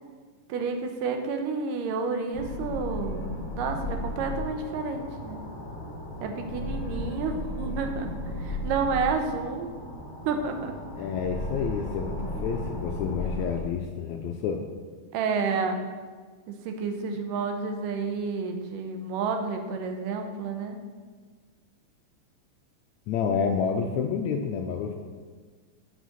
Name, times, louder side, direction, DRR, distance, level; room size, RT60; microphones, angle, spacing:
voice 1, 0.5-5.4 6.2-9.7 10.2-10.7 15.1-15.8 16.5-20.8, right 5 dB, 85° right, 5 dB, 2.4 m, -30 dB
sound 1, 2.3-13.6, left 1 dB, 50° left, 1.8 m, -35 dB
voice 2, 10.9-14.6 23.1-24.9, left 6 dB, 80° left, 4 dB, 1.7 m, -29 dB
12.5 x 4.9 x 4.1 m, 1.5 s
omnidirectional pair, 3.8 m